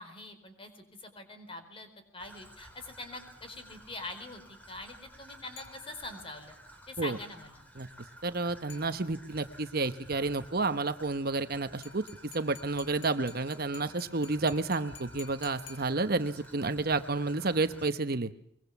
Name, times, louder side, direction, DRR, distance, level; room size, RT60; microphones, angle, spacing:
voice 1, 0.0-6.5 6.9-7.7, left 2 dB, 30° left, 7 dB, 4.4 m, -44 dB
Traffic noise roadway noise / Trickle dribble, 2.2-17.8, equal, 10° left, 4.6 m, -53 dB
sound 1, 5.6-6.4 8.7-9.4 11.8-16.4, left 6 dB, 65° left, 6.6 m, -52 dB
voice 2, 8.2-12.0 12.3-18.3, right 3 dB, 50° right, 10 dB, 1.0 m, -30 dB
23.5 x 22.5 x 7.2 m, 0.67 s
head